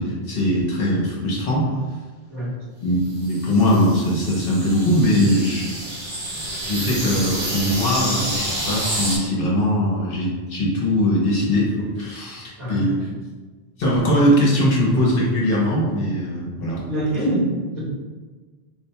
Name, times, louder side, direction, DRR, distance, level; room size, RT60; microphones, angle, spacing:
voice 1, 0.0-1.7 2.8-5.8 6.4-13.0 13.8-16.8, equal, 60° left, -4 dB, 0.9 m, -21 dB
sound 1, 3.1-9.2, right 1 dB, 30° right, 0.9 m, -29 dB
voice 2, 12.6-12.9 16.9-17.8, right 1 dB, 65° right, -10 dB, 1.7 m, -24 dB
3.8 x 2.2 x 2.8 m, 1.4 s
omnidirectional pair, 1.1 m